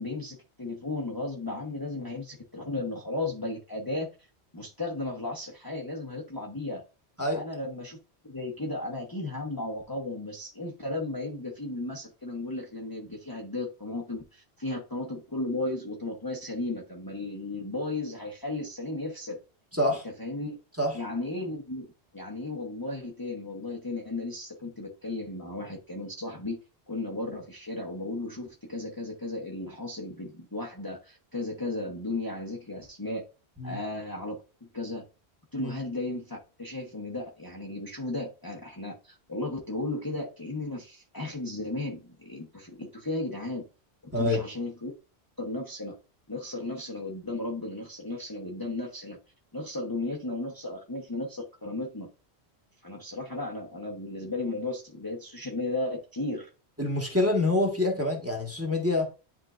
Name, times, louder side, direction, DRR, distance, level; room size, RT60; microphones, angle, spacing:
voice 1, 0.0-4.1 4.5-6.8 7.3-8.0 8.2-19.4 19.9-20.6 20.9-21.9 22.1-26.6 26.9-33.2 33.6-35.0 35.5-43.6 44.0-44.9 45.4-45.9 46.3-49.2 49.5-52.1 52.8-56.5, left 2 dB, 20° left, 1.1 m, -35 dB
voice 2, 19.7-20.0 20.8-21.0 33.6-33.8 35.6-35.7 44.1-44.4 56.8-59.1, left 2 dB, 15° right, 1.5 m, -26 dB
10.5 x 3.7 x 2.5 m
omnidirectional pair, 1.1 m